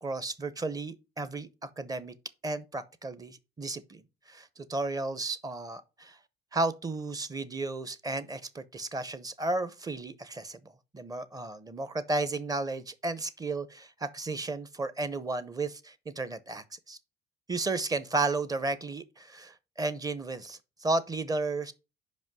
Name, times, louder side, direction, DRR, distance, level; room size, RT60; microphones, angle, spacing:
voice 1, 0.0-2.2 2.4-6.2 6.5-10.6 10.9-17.0 17.5-21.7, right 3 dB, 20° right, 0.8 m, -33 dB
5.3 x 5.3 x 6.1 m
cardioid pair, 110°, 17 cm